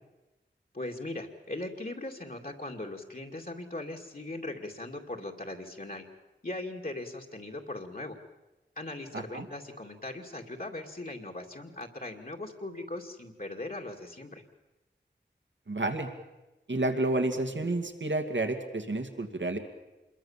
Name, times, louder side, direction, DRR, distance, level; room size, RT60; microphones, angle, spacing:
voice 1, 0.7-6.0 6.4-8.2 8.8-14.4, left 2 dB, 50° left, 0 dB, 2.5 m, -39 dB
voice 2, 9.1-9.5 15.7-16.1 16.7-19.6, right 2 dB, 80° right, 5 dB, 2.4 m, -30 dB
26.5 x 21.5 x 7.4 m, 1.0 s
wide cardioid pair, 50°, 19 cm